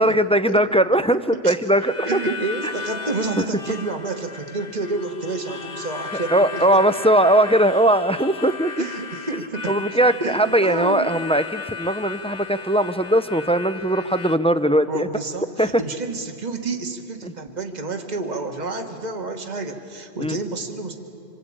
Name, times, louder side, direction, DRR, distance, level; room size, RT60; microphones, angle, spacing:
voice 1, 0.0-2.2 2.6-2.7 3.4-3.5 6.1-8.9 9.7-15.1 15.6-15.8 20.2-20.4, right 1 dB, 10° left, 11 dB, 0.4 m, -19 dB
Harmonica, 1.8-14.4, left 5 dB, 60° left, 1.6 m, -36 dB
voice 2, 2.0-6.7 8.8-9.7 10.2-11.1 14.9-21.0, right 3 dB, 40° right, 4 dB, 1.8 m, -29 dB
27.0 x 25.0 x 8.8 m, 2.7 s
omnidirectional pair, 1.1 m